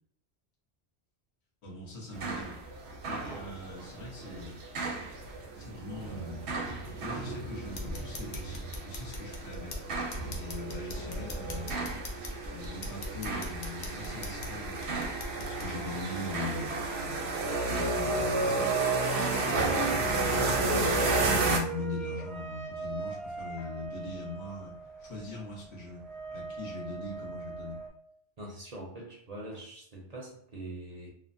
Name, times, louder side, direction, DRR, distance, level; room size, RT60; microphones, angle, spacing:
voice 1, 1.6-2.6 3.0-4.6 5.5-6.4 7.0-9.8 10.2-11.8 12.5-16.7 17.7-18.8 19.9-24.7 25.0-26.0 26.3-27.8, left 3 dB, 85° left, -4 dB, 1.4 m, -41 dB
sound 1, 2.1-21.6, right 3 dB, 80° right, 0.9 m, -32 dB
sound 2, 7.6-15.7, left 1 dB, 50° left, 0.6 m, -42 dB
sound 3, 19.5-27.9, right 4 dB, ahead, 0.5 m, -41 dB
voice 2, 28.4-31.1, right 1 dB, 45° right, -2 dB, 0.6 m, -43 dB
3.1 x 2.1 x 2.5 m, 0.67 s
omnidirectional pair, 1.1 m